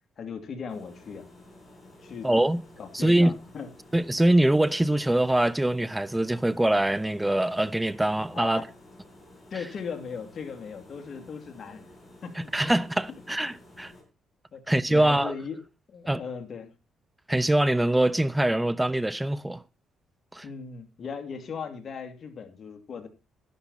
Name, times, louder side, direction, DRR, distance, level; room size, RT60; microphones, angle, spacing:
voice 1, 0.2-1.2 2.0-2.3 2.8-3.7 8.3-8.7 9.5-11.9 12.2-12.7 14.5-14.6 14.9-15.6 15.9-16.7 20.4-23.1, left 6 dB, 50° left, 2.7 m, -38 dB
sound 1, 0.7-14.0, left 1 dB, 15° left, 7.4 m, -52 dB
voice 2, 2.2-2.6 2.9-3.3 3.9-8.6 12.4-13.9 14.7-15.3 16.1-16.2 17.3-19.6 20.3-20.4, right 1 dB, 10° right, 0.6 m, -23 dB
12.0 x 11.5 x 4.1 m
cardioid pair, 90°, 0 cm